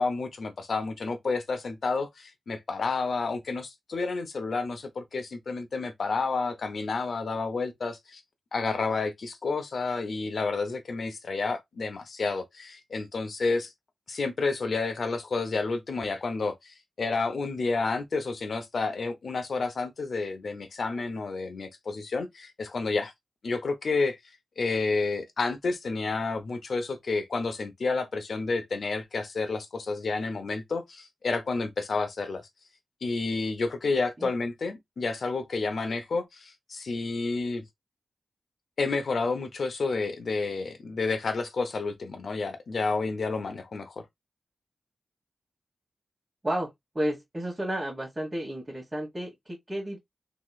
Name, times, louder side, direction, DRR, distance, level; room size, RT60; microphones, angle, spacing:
voice 1, 0.0-8.2 8.5-13.7 14.1-23.1 23.4-24.2 24.6-32.4 33.0-37.6 38.8-44.0, left 3 dB, 70° left, 0.7 m, -30 dB
voice 2, 46.9-50.0, right 1 dB, 25° right, 1.5 m, -32 dB
3.0 x 2.9 x 2.3 m
wide cardioid pair, 80°, 0 cm